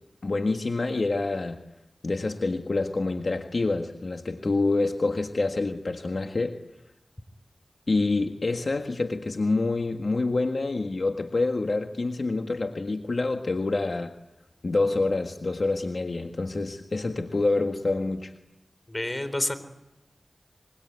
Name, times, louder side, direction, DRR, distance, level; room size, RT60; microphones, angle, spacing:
voice 1, 0.2-1.6 2.0-6.6 7.9-14.2 14.6-18.3, left 3 dB, 65° left, 5 dB, 1.6 m, -27 dB
voice 2, 18.9-19.5, left 1 dB, 25° left, 11 dB, 4.1 m, -28 dB
25.5 x 23.0 x 9.6 m, 0.90 s
cardioid pair, 45°, 0 cm